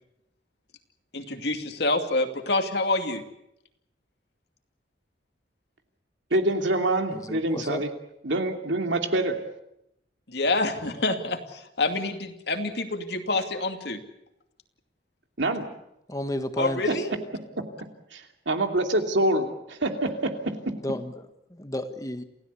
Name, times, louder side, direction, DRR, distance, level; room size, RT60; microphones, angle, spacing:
voice 1, 1.1-3.2 10.3-14.0 16.6-17.1, left 2 dB, 60° left, 5 dB, 2.6 m, -27 dB
voice 2, 6.3-7.9 8.2-9.4 15.4-15.7 16.9-17.0 18.1-20.8, right 1 dB, 80° right, 5 dB, 2.7 m, -26 dB
voice 3, 7.1-7.8 16.1-16.8 20.8-21.1 21.5-22.2, left 1 dB, 20° left, 8 dB, 1.5 m, -31 dB
28.5 x 16.0 x 8.3 m, 0.83 s
head